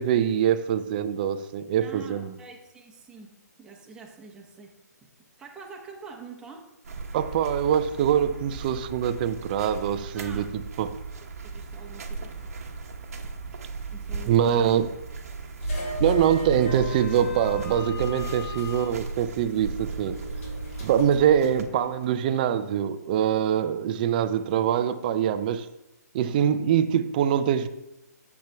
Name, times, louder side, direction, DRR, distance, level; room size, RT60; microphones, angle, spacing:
voice 1, 0.0-2.3 7.1-10.9 14.3-14.9 16.0-20.2 20.8-25.7 26.1-27.7, right 9 dB, 30° right, 11 dB, 0.4 m, -24 dB
voice 2, 1.8-4.7 5.0-5.1 5.4-6.7 10.1-10.4 11.4-12.5 13.9-14.7 15.8-15.9, right 5 dB, 10° right, -1 dB, 1.0 m, -45 dB
sound 1, 6.8-21.6, right 4 dB, 55° right, 1.0 m, -38 dB
sound 2, 15.6-22.1, equal, 60° left, 2.9 m, -35 dB
10.0 x 7.3 x 2.3 m, 0.91 s
figure-of-eight pair, 135°, 9 cm